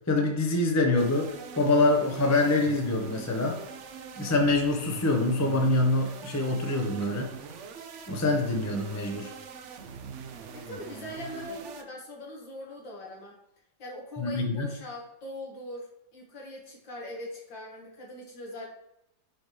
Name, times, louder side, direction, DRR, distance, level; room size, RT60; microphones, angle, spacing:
voice 1, 0.1-3.6 4.2-7.3 8.1-9.3 14.2-14.7, left 2 dB, 20° left, 2 dB, 0.4 m, -25 dB
sound 1, 1.0-11.8, right 6 dB, 70° right, 0.7 m, -43 dB
voice 2, 10.5-13.4 13.8-18.7, left 1 dB, 80° left, -2 dB, 2.4 m, -41 dB
6.2 x 5.2 x 3.2 m, 0.83 s
omnidirectional pair, 2.0 m